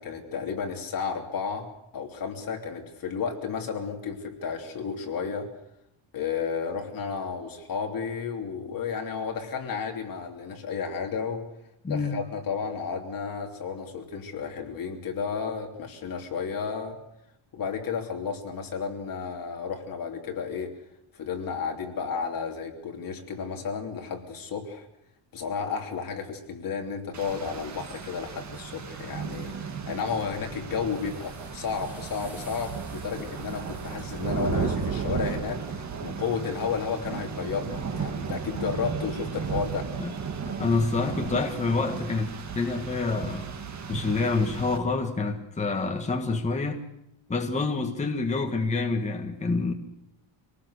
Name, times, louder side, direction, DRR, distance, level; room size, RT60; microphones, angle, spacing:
voice 1, 0.0-1.7 1.9-5.5 6.1-11.5 11.9-17.0 17.5-20.7 21.1-24.9 25.3-29.5 29.9-35.6 36.0-39.9, left 6 dB, 40° left, 3.2 m, -32 dB
voice 2, 11.8-12.2 40.0-40.1 40.4-43.5 43.9-46.8 47.3-49.7, left 3 dB, 15° left, 1.6 m, -27 dB
Rain, 27.1-44.8, right 6 dB, 35° right, 1.9 m, -34 dB
sound 1, 29.9-35.5, left 1 dB, 5° right, 3.4 m, -49 dB
25.5 x 19.0 x 6.6 m
cardioid pair, 165°, 49 cm